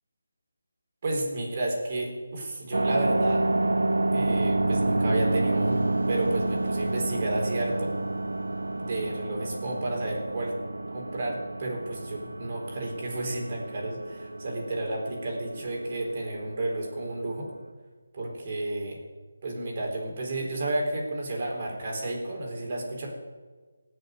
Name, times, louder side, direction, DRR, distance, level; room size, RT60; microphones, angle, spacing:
voice 1, 1.0-3.4 4.1-7.9 8.8-10.5 10.9-17.5 18.1-19.0 19.4-23.1, right 2 dB, 35° right, -1 dB, 4.1 m, -31 dB
sound 1, 2.7-17.7, right 2 dB, 90° right, 0.8 m, -29 dB
18.0 x 6.8 x 9.3 m, 1.4 s
figure-of-eight pair, 165°, 0 cm